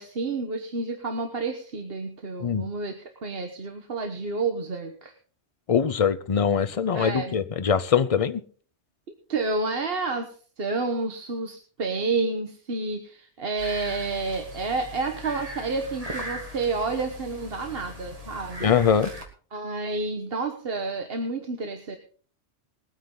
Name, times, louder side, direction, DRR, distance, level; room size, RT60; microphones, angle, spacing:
voice 1, 0.0-5.1 6.9-7.3 9.1-18.7 19.5-22.0, right 3 dB, 55° right, 5 dB, 1.4 m, -30 dB
voice 2, 5.7-8.4 18.6-19.1, left 7 dB, 35° left, 12 dB, 0.7 m, -22 dB
sound 1, 13.6-19.2, left 1 dB, 30° right, 2.1 m, -39 dB
20.5 x 9.3 x 3.8 m, 0.42 s
omnidirectional pair, 1.2 m